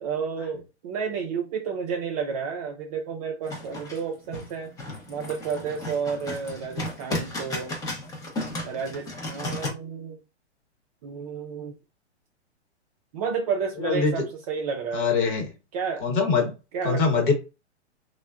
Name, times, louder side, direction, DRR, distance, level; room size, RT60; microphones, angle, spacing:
voice 1, 0.0-4.7 5.1-7.8 8.6-10.2 11.0-11.7 13.1-15.1 15.7-16.1 16.7-17.3, right 6 dB, 35° right, 0.4 m, -31 dB
sound 1, 3.5-9.7, left 2 dB, 10° left, 0.6 m, -34 dB
voice 2, 13.8-14.2 14.9-15.5 16.0-16.5 16.8-17.3, left 5 dB, 45° left, 1.2 m, -23 dB
3.2 x 2.2 x 2.3 m
hypercardioid pair, 130°, 35 cm